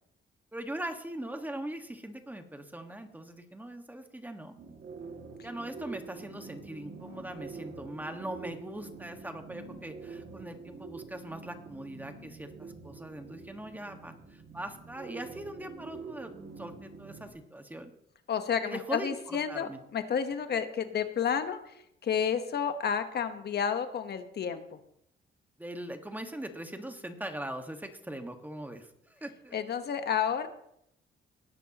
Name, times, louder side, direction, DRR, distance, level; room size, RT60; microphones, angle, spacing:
voice 1, 0.5-4.6 5.4-16.3 16.6-17.9 18.6-19.8 25.6-29.6, right 1 dB, 10° right, 6 dB, 1.6 m, -41 dB
sound 1, 4.6-17.3, right 4 dB, 60° right, 2.2 m, -46 dB
voice 2, 18.3-21.6 22.0-24.6 29.5-30.5, left 7 dB, 55° left, 8 dB, 1.2 m, -30 dB
19.0 x 10.5 x 3.0 m, 0.75 s
cardioid pair, 90°, 20 cm